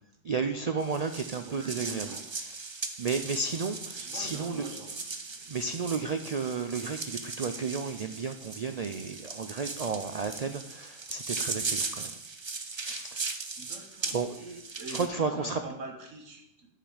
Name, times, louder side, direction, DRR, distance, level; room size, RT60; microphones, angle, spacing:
voice 1, 0.2-4.7 5.5-12.2 12.8-13.2 14.1-14.6 14.9-15.6, right 5 dB, 90° right, 8 dB, 0.3 m, -33 dB
sound 1, 0.8-15.1, right 4 dB, 30° right, 0.5 m, -38 dB
voice 2, 1.4-2.3 4.0-4.9 13.6-14.2 14.8-15.1 15.3-16.7, right 3 dB, 70° right, 3 dB, 1.5 m, -44 dB
10.0 x 5.8 x 5.0 m, 0.80 s
omnidirectional pair, 1.4 m